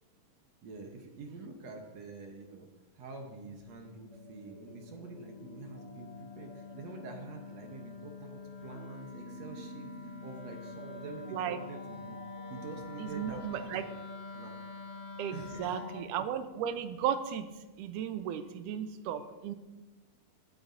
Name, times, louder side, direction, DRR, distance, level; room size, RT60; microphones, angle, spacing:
voice 1, 0.6-2.7 2.9-12.2 12.5-14.0 14.3-14.5 15.3-15.8, right 3 dB, 65° right, 3 dB, 2.1 m, -47 dB
Wind instrument woodwind instrument, 3.2-16.1, left 4 dB, 45° left, 3.4 m, -46 dB
sound 1, 4.1-16.0, right 2 dB, 25° right, 1.9 m, -53 dB
voice 2, 13.0-13.9 15.2-17.5 17.8-19.5, right 9 dB, 90° right, 10 dB, 2.2 m, -35 dB
19.5 x 8.8 x 2.7 m, 1.2 s
omnidirectional pair, 3.6 m